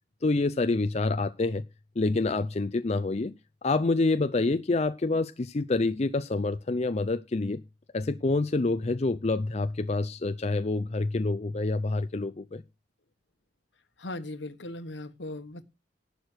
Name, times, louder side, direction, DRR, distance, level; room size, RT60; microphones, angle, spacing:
voice 1, 0.2-1.6 2.0-3.3 3.6-7.6 7.9-12.6, left 3 dB, 35° left, 0.5 m, -27 dB
voice 2, 14.0-15.6, left 2 dB, 75° left, 1.4 m, -38 dB
11.5 x 6.7 x 6.2 m
head